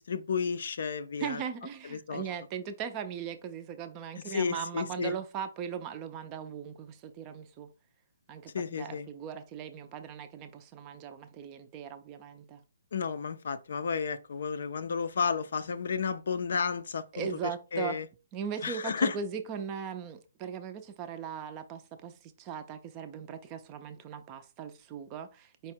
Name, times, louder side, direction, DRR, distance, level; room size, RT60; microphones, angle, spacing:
voice 1, 0.0-1.4 1.9-2.2 4.3-5.1 8.5-9.1 12.9-18.1 18.6-19.2, left 6 dB, 65° left, 0.5 m, -32 dB
voice 2, 1.2-7.7 8.3-12.6 17.1-18.0 18.3-25.7, right 7 dB, 20° right, 0.4 m, -39 dB
4.6 x 2.1 x 4.3 m
hypercardioid pair, 160°, 0 cm